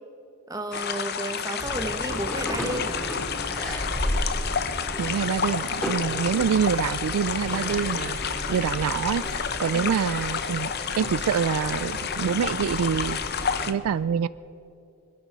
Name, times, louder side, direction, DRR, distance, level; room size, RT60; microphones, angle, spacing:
voice 1, 0.5-3.1 9.7-10.0, right 1 dB, 15° right, 5 dB, 1.0 m, -33 dB
sound 1, 0.7-13.7, left 7 dB, 45° left, 0.7 m, -30 dB
sound 2, 1.6-13.7, equal, 5° left, 2.1 m, -34 dB
voice 2, 5.0-8.2 8.5-10.7 11.0-13.2 13.7-14.3, right 7 dB, 80° right, 18 dB, 0.3 m, -26 dB
25.5 x 10.5 x 4.7 m, 2.7 s
head